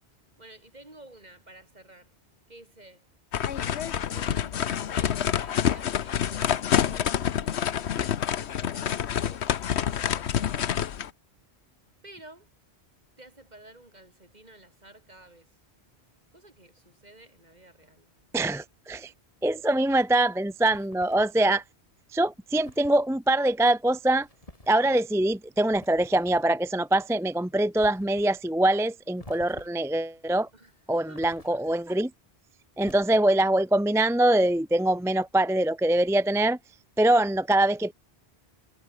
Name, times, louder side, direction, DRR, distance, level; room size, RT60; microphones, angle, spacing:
voice 1, 0.4-2.1 2.5-3.1 3.6-7.6 9.2-11.1 12.0-12.5 13.2-15.6 16.3-18.1 30.5-31.3, right 1 dB, 40° right, 4.2 m, -52 dB
sound 1, 3.3-11.1, left 9 dB, 80° left, 1.1 m, -27 dB
voice 2, 18.3-19.1 19.4-21.6 22.1-24.3 24.7-30.5 30.9-32.1 32.8-36.6 37.0-37.9, right 1 dB, 5° right, 0.4 m, -23 dB
sound 2, 20.7-21.4 22.6-23.0 24.2-24.8 25.7-26.5 27.7-28.3 29.2-29.9 31.1-31.9 32.8-33.5, left 1 dB, 35° left, 3.5 m, -50 dB
omnidirectional pair, 1.1 m